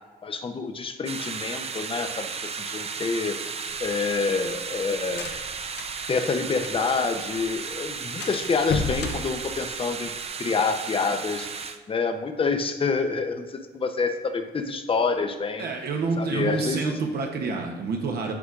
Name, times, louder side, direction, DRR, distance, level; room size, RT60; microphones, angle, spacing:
voice 1, 0.2-3.4 3.8-5.3 6.1-10.1 10.4-11.5 11.9-15.7 16.2-16.8, left 4 dB, 30° left, 7 dB, 0.6 m, -27 dB
sound 1, 1.1-11.8, right 5 dB, 35° right, 0.5 m, -34 dB
sound 2, 3.7-7.1 7.4-7.5 7.8-7.9 8.2-10.3, left 4 dB, 70° left, 0.6 m, -34 dB
voice 2, 15.6-18.3, right 4 dB, 65° right, 2 dB, 0.9 m, -28 dB
8.4 x 4.9 x 2.4 m, 1.3 s
cardioid pair, 85°, 18 cm